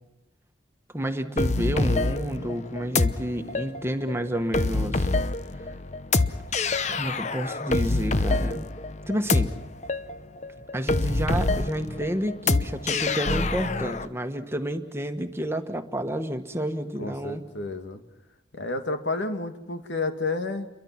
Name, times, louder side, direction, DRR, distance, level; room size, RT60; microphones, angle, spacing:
voice 1, 0.9-5.1 6.8-8.7 9.1-9.5 10.7-17.4, equal, 15° right, 6 dB, 1.4 m, -30 dB
sound 1, 1.4-14.1, left 3 dB, 40° left, 0.8 m, -26 dB
voice 2, 17.0-18.0 18.5-20.7, left 3 dB, 80° left, 7 dB, 2.2 m, -30 dB
29.5 x 23.0 x 5.9 m, 0.93 s
head